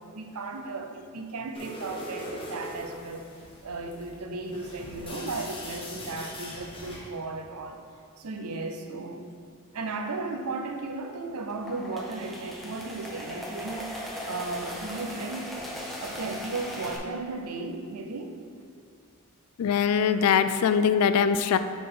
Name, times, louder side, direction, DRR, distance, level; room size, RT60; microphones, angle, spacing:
voice 1, 0.0-3.3 3.6-7.8 8.2-9.3 9.7-15.5 16.0-18.4 20.4-20.5, right 3 dB, 85° right, 4 dB, 0.6 m, -35 dB
sound 1, 1.6-7.1, equal, 25° left, 1.2 m, -41 dB
sound 2, 11.4-17.0, left 1 dB, ahead, 0.8 m, -38 dB
voice 2, 19.6-21.6, left 7 dB, 80° left, 11 dB, 0.3 m, -22 dB
9.2 x 3.9 x 3.8 m, 2.2 s
head